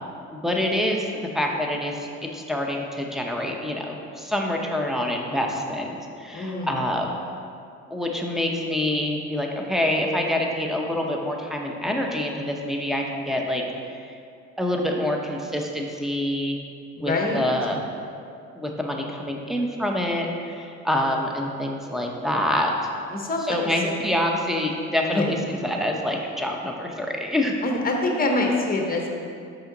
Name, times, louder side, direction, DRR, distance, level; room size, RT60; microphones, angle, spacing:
voice 1, 0.3-7.1 7.9-13.6 14.1-14.2 14.6-16.6 17.0-17.8 18.6-22.9 23.5-25.4 25.6-27.6, left 1 dB, ahead, 0 dB, 0.8 m, -26 dB
voice 2, 6.3-6.8 17.0-17.4 23.1-23.9 25.1-25.2 27.6-29.1, left 2 dB, 30° left, 1 dB, 1.0 m, -25 dB
5.6 x 5.6 x 3.9 m, 2.5 s
cardioid pair, 90°, 30 cm